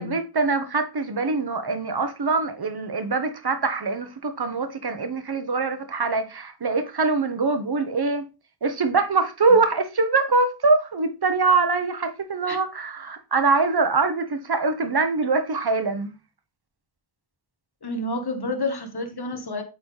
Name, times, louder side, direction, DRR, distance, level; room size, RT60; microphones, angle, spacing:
voice 1, 0.0-8.3 8.6-16.1, right 4 dB, 65° right, 1.0 m, -23 dB
voice 2, 17.8-19.6, left 2 dB, 65° left, 1.4 m, -29 dB
8.4 x 4.0 x 3.2 m
wide cardioid pair, 65°, 41 cm